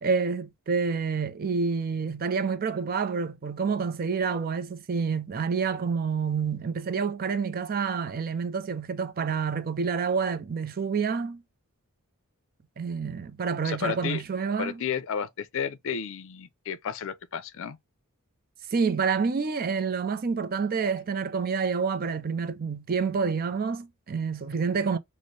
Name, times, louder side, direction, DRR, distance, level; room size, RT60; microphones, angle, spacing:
voice 1, 0.0-11.4 12.8-14.8 18.7-25.0, right 5 dB, 40° right, 0.4 m, -28 dB
voice 2, 13.6-14.2 14.6-17.8, left 7 dB, 60° left, 0.5 m, -32 dB
4.1 x 2.1 x 3.1 m
head